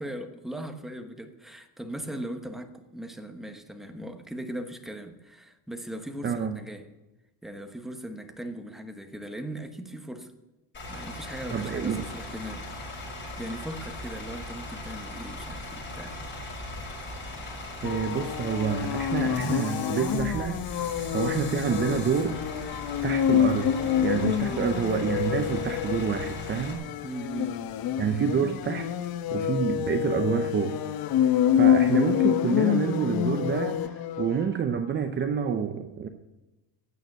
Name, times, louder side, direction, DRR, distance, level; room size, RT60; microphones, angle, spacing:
voice 1, 0.0-6.9 7.4-10.3 10.9-12.7 13.4-16.2 24.5-24.8 27.0-27.8, right 1 dB, ahead, 6 dB, 1.1 m, -38 dB
voice 2, 6.2-6.6 11.5-12.1 17.8-20.6 21.1-22.4 23.0-26.8 28.0-28.9 29.3-30.8 31.6-36.1, right 7 dB, 25° right, 6 dB, 0.7 m, -28 dB
Bus / Idling, 10.7-26.7, left 1 dB, 25° left, 6.0 m, -39 dB
sound 1, 17.8-34.4, left 10 dB, 60° left, 1.0 m, -27 dB
15.5 x 9.4 x 9.4 m, 1.1 s
cardioid pair, 170°, 40 cm